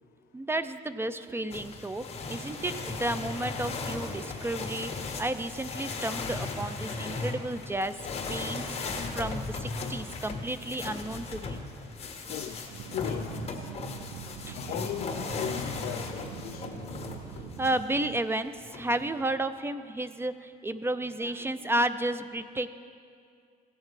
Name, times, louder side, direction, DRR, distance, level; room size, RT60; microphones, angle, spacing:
voice 1, 0.3-2.0 2.3-4.9 5.2-7.9 8.3-11.6 14.5-14.6 17.6-22.7, right 1 dB, 15° right, 0.4 m, -32 dB
sound 1, 1.5-17.8 18.6-19.2, left 3 dB, 35° left, 1.5 m, -37 dB
voice 2, 12.3-12.6 12.9-13.5 14.5-16.8, left 11 dB, 65° left, 0.4 m, -37 dB
sound 2, 12.7-18.2, right 9 dB, 70° right, 0.5 m, -44 dB
16.5 x 6.6 x 4.8 m
cardioid pair, 110°, 17 cm